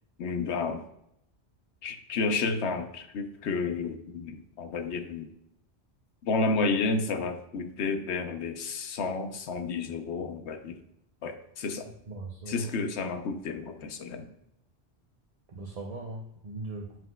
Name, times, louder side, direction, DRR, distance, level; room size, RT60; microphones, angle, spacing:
voice 1, 0.2-0.8 1.8-5.3 6.3-10.8 11.2-11.9 12.5-14.3, left 4 dB, 85° left, 8 dB, 1.0 m, -31 dB
voice 2, 11.8-12.7 15.5-17.1, right 2 dB, 40° right, 0 dB, 0.7 m, -40 dB
7.8 x 7.4 x 2.3 m, 0.79 s
omnidirectional pair, 1.1 m